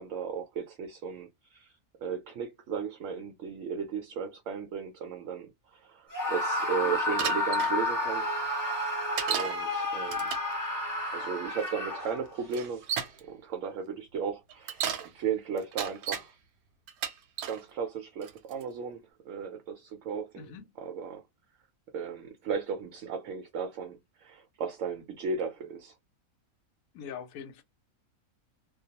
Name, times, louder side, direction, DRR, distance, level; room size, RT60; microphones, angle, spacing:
voice 1, 0.0-1.7 2.0-8.3 9.3-10.3 11.1-12.9 13.3-16.4 17.4-21.2 21.9-25.9, right 6 dB, 70° right, 0.9 m, -35 dB
Screaming, 6.1-12.4, left 1 dB, 20° left, 0.5 m, -31 dB
Bicycle, 7.2-7.7 9.2-9.6 10.0-10.5 11.6-11.7 12.5-13.2 14.5-15.1 15.6-16.3 16.9-17.6 18.2-18.6, right 8 dB, 90° right, 1.1 m, -34 dB
voice 2, 20.4-20.7 26.9-27.6, left 7 dB, 75° left, 1.0 m, -42 dB
2.3 x 2.2 x 2.8 m
omnidirectional pair, 1.5 m